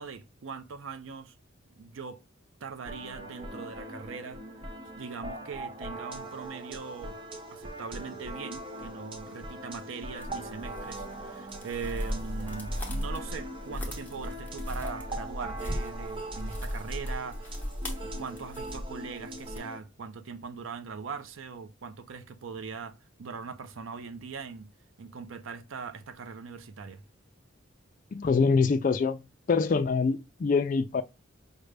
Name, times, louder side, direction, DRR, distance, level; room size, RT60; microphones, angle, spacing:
voice 1, 0.0-1.4 1.8-2.2 2.6-4.4 5.0-7.1 7.5-17.7 18.0-24.7 25.0-27.0, right 5 dB, 75° right, 0.5 m, -41 dB
sound 1, 2.8-19.8, right 1 dB, 25° right, 0.5 m, -41 dB
sound 2, 10.2-19.6, equal, 10° left, 0.7 m, -37 dB
voice 2, 28.1-29.2 29.5-31.0, left 4 dB, 40° left, 0.3 m, -24 dB
5.0 x 2.1 x 3.2 m
head